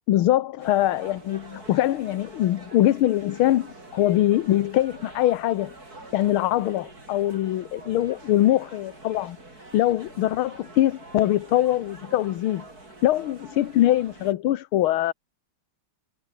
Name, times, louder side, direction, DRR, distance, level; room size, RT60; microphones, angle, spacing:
voice 1, 0.1-5.7 6.1-9.4 9.7-12.7 13.0-15.1, left 13 dB, 75° left, 1.7 m, -23 dB
sound 1, 0.6-14.3, right 2 dB, 40° right, 7.0 m, -46 dB
omnidirectional pair, 2.4 m